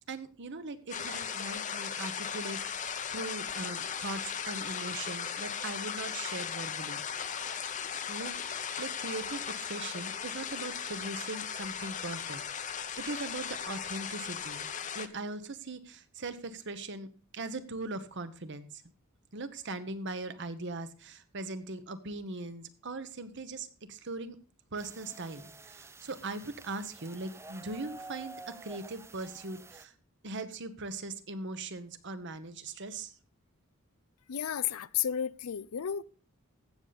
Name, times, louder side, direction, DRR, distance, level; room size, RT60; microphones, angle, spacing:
voice 1, 0.1-7.0 8.1-14.7 14.9-18.8 19.3-24.3 24.7-28.4 28.6-29.9 30.2-33.1, right 2 dB, 55° right, 1.1 m, -40 dB
sound 1, 0.9-15.1, left 7 dB, 35° left, 0.8 m, -37 dB
sound 2, 24.8-29.9, right 3 dB, 10° right, 0.5 m, -49 dB
voice 2, 34.3-36.0, left 9 dB, 75° left, 0.5 m, -32 dB
15.5 x 6.9 x 4.1 m
head